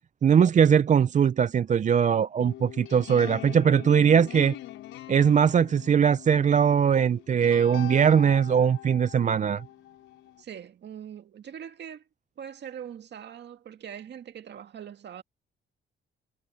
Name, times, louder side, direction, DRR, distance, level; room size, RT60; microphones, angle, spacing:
voice 1, 0.2-4.6 5.1-9.6, right 7 dB, 40° right, 0.5 m, -21 dB
sound 1, 2.4-10.4, left 14 dB, 90° left, 4.8 m, -42 dB
voice 2, 10.4-12.1 12.4-15.2, right 9 dB, 60° right, 2.1 m, -42 dB
cardioid pair, 90°, 20 cm